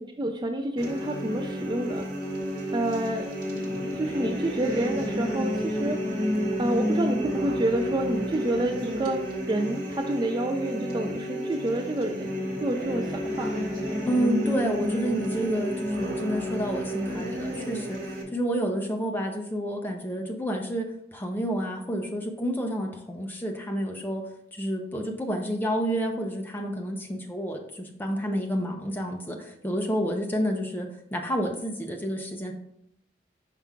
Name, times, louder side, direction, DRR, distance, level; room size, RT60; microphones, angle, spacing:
voice 1, 0.0-2.1 2.7-3.3 4.0-6.3 6.6-9.2 9.5-13.7, right 1 dB, 25° right, 4 dB, 0.3 m, -29 dB
sound 1, 0.8-18.2, equal, 50° right, 1.5 m, -30 dB
voice 2, 14.1-24.3 24.5-32.5, equal, 10° left, 2 dB, 0.7 m, -29 dB
5.8 x 4.7 x 3.6 m, 0.75 s
head